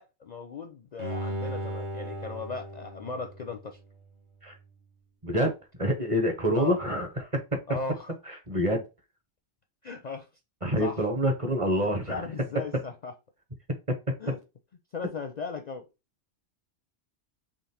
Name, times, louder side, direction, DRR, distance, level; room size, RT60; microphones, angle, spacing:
voice 1, 0.0-3.8 6.6-6.8 7.7-8.1 9.8-10.3 10.8-11.1 11.7-13.1 14.2-14.4 14.9-15.9, left 4 dB, 50° left, 0.5 m, -37 dB
Bowed string instrument, 1.0-4.1 4.5-4.6, right 1 dB, 45° right, 1.2 m, -37 dB
voice 2, 5.2-5.5 5.8-7.4 7.7-7.8 8.3-8.8 10.6-12.2, equal, 30° right, 0.9 m, -26 dB
3.8 x 3.1 x 4.1 m
omnidirectional pair, 1.2 m